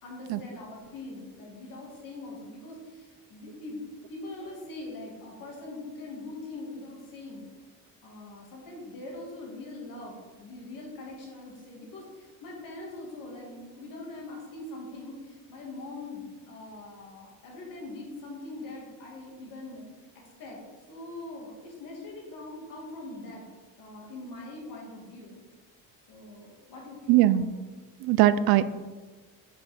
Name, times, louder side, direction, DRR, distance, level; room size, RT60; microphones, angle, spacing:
voice 1, 0.0-3.8 4.1-7.5 8.0-19.8 20.1-20.6 20.9-23.4 23.8-25.4 26.1-27.5, left 2 dB, 65° left, -2 dB, 2.5 m, -42 dB
voice 2, 27.1-27.5 28.0-28.7, right 13 dB, 90° right, 15 dB, 0.5 m, -20 dB
6.7 x 6.0 x 5.1 m, 1.3 s
cardioid pair, 175°, 35 cm